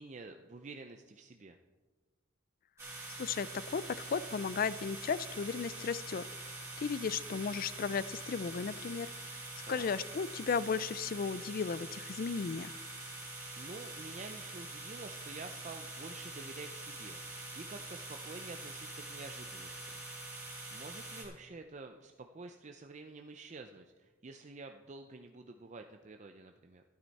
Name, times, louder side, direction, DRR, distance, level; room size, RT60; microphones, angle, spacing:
voice 1, 0.0-1.6 9.6-9.9 13.6-17.2 17.5-20.0 20.7-26.8, right 3 dB, 35° right, 5 dB, 0.5 m, -49 dB
sound 1, 2.8-21.3, right 2 dB, 15° right, 2.9 m, -45 dB
voice 2, 3.2-6.2 6.8-9.1 9.7-12.8, left 5 dB, 45° left, 18 dB, 0.3 m, -35 dB
12.5 x 11.5 x 4.1 m, 1.3 s
head